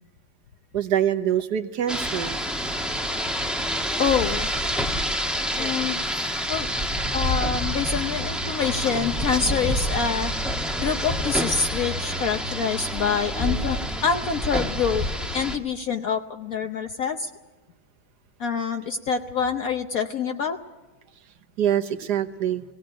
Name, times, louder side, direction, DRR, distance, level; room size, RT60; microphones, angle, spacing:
voice 1, 0.7-2.4 21.6-22.6, right 10 dB, 65° right, 9 dB, 1.5 m, -24 dB
Rain, 1.9-15.6, equal, ahead, 0.9 m, -27 dB
voice 2, 4.0-4.5 5.6-6.0 6.5-6.7 7.1-10.3 10.8-15.0 15.3-17.3 18.4-20.6, left 6 dB, 60° left, 6 dB, 1.1 m, -26 dB
18.0 x 18.0 x 8.9 m, 1.2 s
omnidirectional pair, 2.0 m